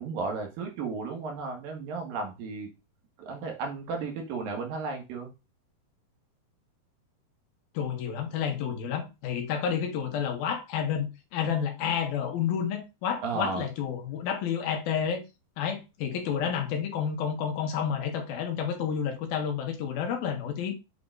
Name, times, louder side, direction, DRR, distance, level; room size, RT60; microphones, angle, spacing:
voice 1, 0.0-2.7 3.3-5.3 13.2-13.6, right 4 dB, 75° right, 3.3 m, -34 dB
voice 2, 7.7-15.2 15.6-20.7, left 7 dB, 90° left, 3.2 m, -30 dB
8.6 x 3.9 x 3.9 m
omnidirectional pair, 4.2 m